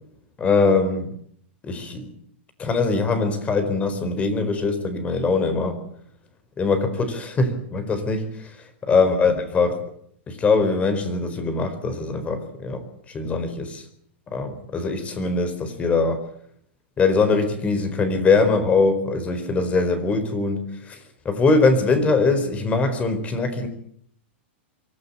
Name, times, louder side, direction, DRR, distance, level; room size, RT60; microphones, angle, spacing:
voice 1, 0.4-1.1 1.6-2.1 2.6-5.8 6.6-8.3 8.8-9.8 10.3-12.8 13.1-13.8 14.3-16.2 17.0-21.0 21.2-23.7, left 4 dB, 20° left, 9 dB, 4.4 m, -22 dB
23.5 x 14.5 x 10.0 m, 0.67 s
hypercardioid pair, 135°, 6 cm